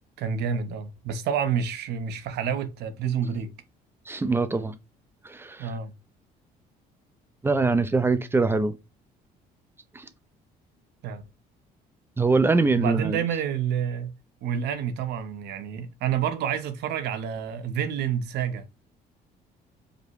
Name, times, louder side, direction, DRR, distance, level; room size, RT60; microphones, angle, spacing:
voice 1, 0.2-3.5 5.6-5.9 11.0-11.2 12.7-14.1 14.4-18.6, right 8 dB, 75° right, 0.9 m, -28 dB
voice 2, 4.1-4.7 5.2-5.7 7.4-8.7 9.9-10.1 12.2-13.2, right 3 dB, 15° right, 0.6 m, -23 dB
5.1 x 2.2 x 4.7 m
cardioid pair, 110°, 17 cm